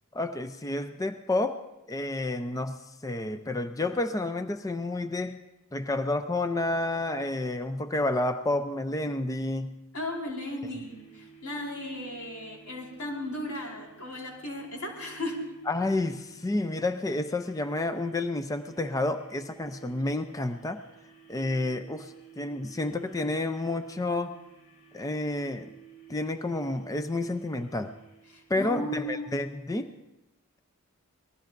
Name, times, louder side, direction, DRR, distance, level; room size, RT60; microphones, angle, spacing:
voice 1, 0.1-5.4 5.7-9.8 15.7-20.8 21.3-24.3 24.9-25.7 26.1-27.9 28.5-29.9, left 2 dB, 15° left, 9 dB, 0.4 m, -30 dB
voice 2, 9.9-15.4 28.3-29.2, left 1 dB, 90° left, -2 dB, 4.7 m, -36 dB
sound 1, 10.7-29.0, right 7 dB, 70° left, 2.6 m, -54 dB
26.0 x 19.5 x 2.5 m, 0.96 s
head